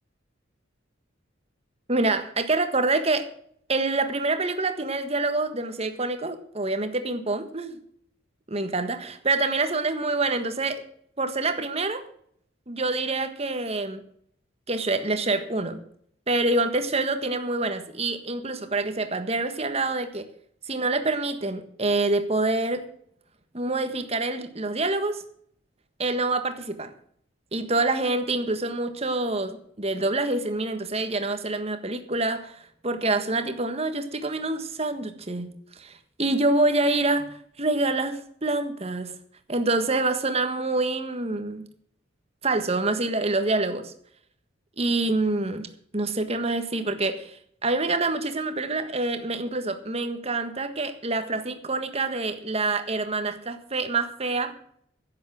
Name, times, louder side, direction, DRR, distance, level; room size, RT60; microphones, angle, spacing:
voice 1, 1.9-3.3 3.7-7.8 8.5-10.8 11.2-12.0 12.7-14.0 14.7-15.8 16.3-20.2 20.7-22.8 23.5-25.2 26.0-26.9 27.5-39.1 39.5-41.6 42.4-43.9 44.8-45.7 45.9-54.5, right 2 dB, 30° right, 8 dB, 1.5 m, -26 dB
11.0 x 8.4 x 7.8 m, 0.65 s
head